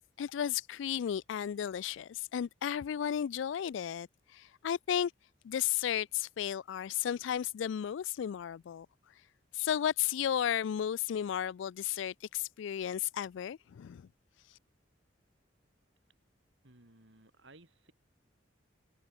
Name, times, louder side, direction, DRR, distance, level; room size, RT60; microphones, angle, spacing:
voice 1, 0.2-4.1 4.3-5.1 5.4-8.9 9.5-14.1, left 9 dB, 75° left, 0.3 m, -33 dB
voice 2, 16.6-17.9, right 2 dB, 70° right, 2.6 m, -59 dB
head